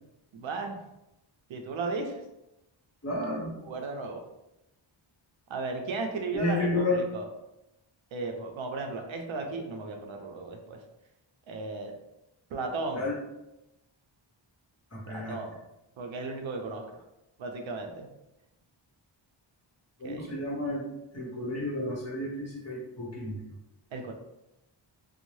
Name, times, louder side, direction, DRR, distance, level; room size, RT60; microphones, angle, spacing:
voice 1, 0.3-0.8 1.5-2.2 3.7-4.2 5.5-7.3 8.1-10.8 11.5-11.9 12.5-13.1 15.1-15.6 16.0-16.8 17.4-18.1 20.0-20.5 23.9-24.1, right 3 dB, 75° right, 3 dB, 0.5 m, -35 dB
voice 2, 3.0-3.5 6.3-7.0 12.9-13.1 14.9-15.4 20.0-20.8 21.1-23.4, left 2 dB, 35° left, -4 dB, 0.8 m, -31 dB
2.6 x 2.0 x 3.1 m, 0.91 s
wide cardioid pair, 150°, 47 cm